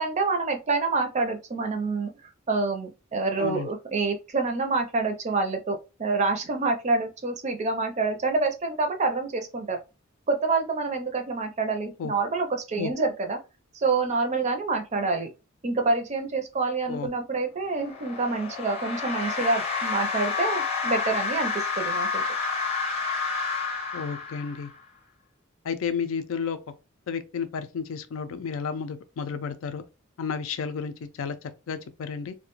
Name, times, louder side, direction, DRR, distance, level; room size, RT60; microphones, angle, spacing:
voice 1, 0.0-2.1 2.5-9.8 10.3-13.4 13.7-15.3 15.6-22.2, right 3 dB, 35° right, 0.5 m, -27 dB
sound 1, 17.7-24.8, left 4 dB, 30° left, 0.7 m, -29 dB
voice 2, 23.9-24.7 25.6-26.6 27.1-29.8 30.2-32.3, left 6 dB, 80° left, 0.4 m, -32 dB
2.3 x 2.2 x 2.9 m
head